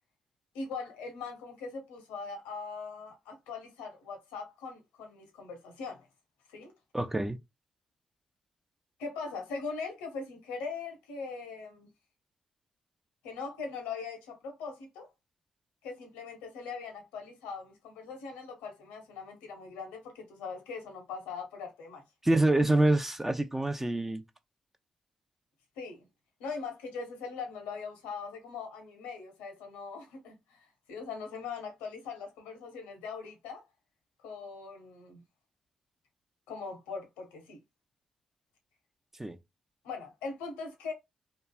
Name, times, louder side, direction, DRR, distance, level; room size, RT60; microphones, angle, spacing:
voice 1, 0.5-6.1 6.5-6.7 9.0-11.9 13.2-15.1 15.8-22.0 25.8-26.0 26.4-30.6 30.9-33.7 34.2-35.2 36.5-37.6 39.8-40.9, left 4 dB, 80° left, 0.8 m, -41 dB
voice 2, 6.9-7.4 22.2-24.2 39.2-39.4, right 2 dB, 15° right, 0.6 m, -26 dB
3.0 x 2.3 x 2.3 m
hypercardioid pair, 40°, 2 cm